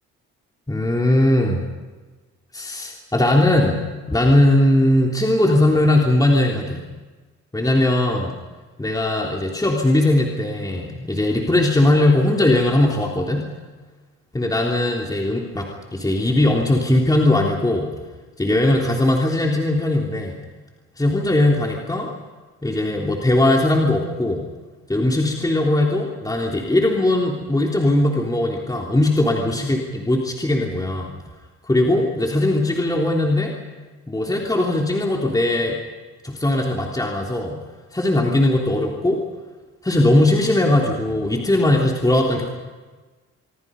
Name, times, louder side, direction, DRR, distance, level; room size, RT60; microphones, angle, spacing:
voice 1, 0.7-1.6 2.5-6.8 7.5-8.3 8.8-13.5 14.3-17.9 18.4-20.4 21.0-22.1 22.6-24.5 24.9-31.2 31.7-33.5 34.1-35.8 36.2-37.6 37.9-39.2 39.8-42.5, left 1 dB, 10° left, -1 dB, 3.5 m, -19 dB
26.5 x 24.0 x 5.5 m, 1.3 s
cardioid pair, 90°, 30 cm